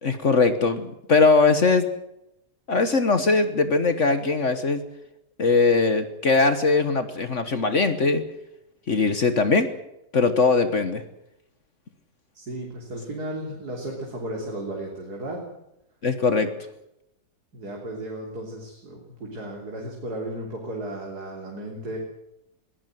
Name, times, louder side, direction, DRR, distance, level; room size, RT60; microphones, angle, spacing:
voice 1, 0.0-1.9 2.7-4.8 5.4-8.2 8.9-9.7 10.1-11.0 16.0-16.5, left 4 dB, 45° left, 11 dB, 1.5 m, -20 dB
voice 2, 12.3-15.4 17.5-22.0, right 1 dB, 60° right, -1 dB, 4.0 m, -34 dB
21.5 x 17.0 x 7.7 m, 0.85 s
omnidirectional pair, 1.9 m